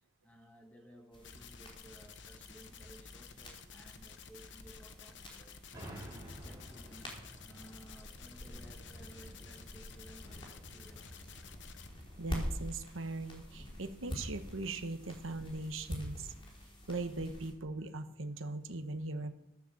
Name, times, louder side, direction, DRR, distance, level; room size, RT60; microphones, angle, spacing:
voice 1, 0.2-5.6 6.3-11.4, right 1 dB, 10° left, 2 dB, 1.9 m, -58 dB
sound 1, 1.1-17.5, equal, 25° left, 3.6 m, -47 dB
sound 2, 1.2-11.9, left 7 dB, 60° left, 0.9 m, -53 dB
Metal impact, 5.7-9.4, equal, 20° right, 3.4 m, -50 dB
voice 2, 12.2-16.3 16.9-19.3, right 2 dB, 80° right, 8 dB, 1.2 m, -40 dB
13.0 x 10.0 x 7.2 m, 0.83 s
head